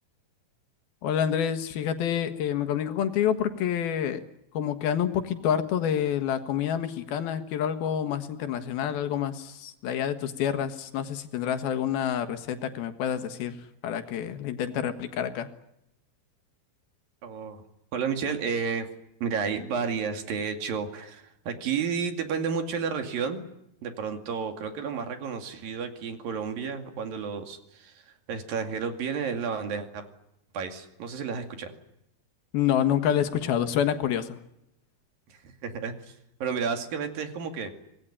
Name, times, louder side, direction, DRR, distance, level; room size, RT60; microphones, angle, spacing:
voice 1, 1.0-4.3 4.5-13.6 13.8-15.5 32.5-34.4, left 9 dB, 75° left, 9 dB, 3.3 m, -28 dB
voice 2, 17.2-17.6 17.9-18.9 19.2-23.4 23.8-30.1 30.5-31.7 35.3-37.7, right 6 dB, 65° right, 6 dB, 4.0 m, -31 dB
25.5 x 19.5 x 10.0 m, 0.83 s
omnidirectional pair, 4.5 m